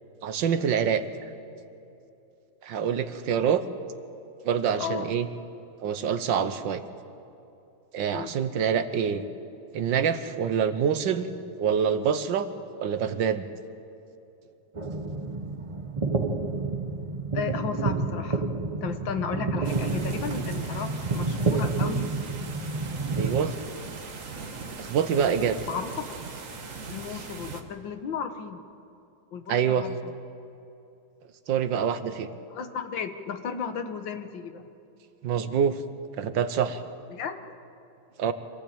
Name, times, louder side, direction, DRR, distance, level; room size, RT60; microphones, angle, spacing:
voice 1, 0.2-1.0 2.6-3.6 4.4-5.3 5.8-6.8 7.9-9.3 9.7-12.5 12.8-13.5 23.2-23.6 24.8-25.6 29.5-29.9 31.5-32.3 35.2-35.8 36.2-36.8 38.2-38.3, right 7 dB, 80° right, 11 dB, 1.7 m, -26 dB
voice 2, 4.8-5.1 8.1-8.3 17.3-18.5 18.8-22.1 25.7-26.2 26.9-28.6 29.3-30.1 32.5-34.7 37.1-37.5, left 6 dB, 85° left, 8 dB, 1.9 m, -34 dB
sound 1, 14.8-23.4, right 3 dB, 25° right, 0.8 m, -29 dB
sound 2, 19.6-27.6, right 4 dB, 45° right, 1.7 m, -38 dB
25.5 x 15.5 x 8.7 m, 2.8 s
omnidirectional pair, 2.0 m